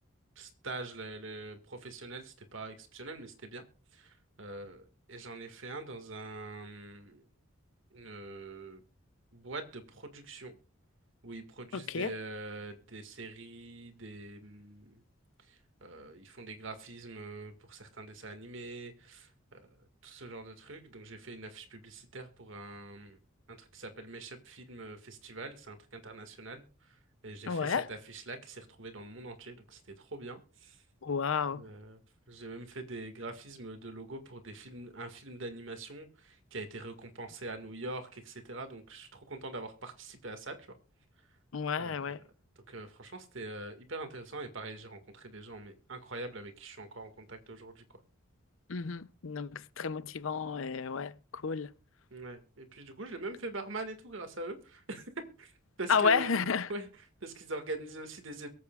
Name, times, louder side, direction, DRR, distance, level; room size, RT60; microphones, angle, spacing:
voice 1, 0.4-3.6 3.9-7.2 7.9-8.8 9.3-10.6 11.2-15.0 15.5-19.6 20.0-23.2 23.5-27.0 27.2-30.8 31.5-32.0 32.3-40.7 41.8-42.1 42.7-48.0 52.1-55.1 55.4-55.5 55.8-56.9 57.2-58.5, right 2 dB, 70° right, 2.0 m, -44 dB
voice 2, 11.7-12.1 27.5-27.9 31.0-31.6 41.5-42.2 48.7-51.7 55.9-56.7, left 5 dB, 75° left, 0.6 m, -31 dB
23.5 x 8.4 x 2.4 m
head